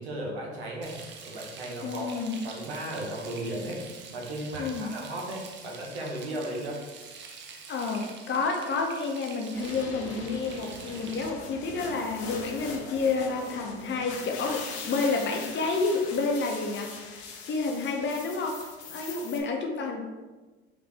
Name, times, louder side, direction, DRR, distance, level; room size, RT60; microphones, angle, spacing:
voice 1, 0.0-2.1 2.4-3.8 4.1-6.8, right 1 dB, 85° right, -2 dB, 1.0 m, -35 dB
Frying (food), 0.8-11.3, right 5 dB, 35° right, 0.9 m, -46 dB
voice 2, 1.8-2.4 4.6-4.9 7.7-17.2 17.5-18.6 18.9-20.0, left 4 dB, 35° left, 2 dB, 0.8 m, -29 dB
sound 1, 9.5-19.4, left 4 dB, 75° left, 0.9 m, -41 dB
5.0 x 2.6 x 3.3 m, 1.2 s
hypercardioid pair, 70°, 33 cm